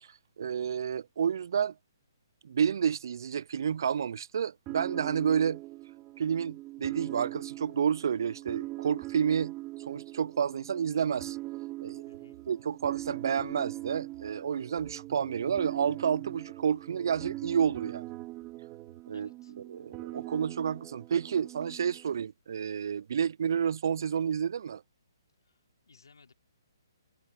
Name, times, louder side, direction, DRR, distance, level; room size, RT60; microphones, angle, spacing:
voice 1, 0.0-1.7 2.4-5.6 6.2-9.5 9.8-11.4 11.8-12.0 12.5-18.0 19.1-19.3 19.6-24.8, right 7 dB, 65° right, 0.3 m, -30 dB
sound 1, 4.7-22.1, right 18 dB, 25° right, 1.9 m, -42 dB
voice 2, 12.0-12.4 19.1-19.5 25.4-25.6 25.9-26.3, left 4 dB, 85° left, 4.3 m, -59 dB
sound 2, 12.1-19.0, right 10 dB, 45° right, 1.9 m, -56 dB
hypercardioid pair, 140°, 2 cm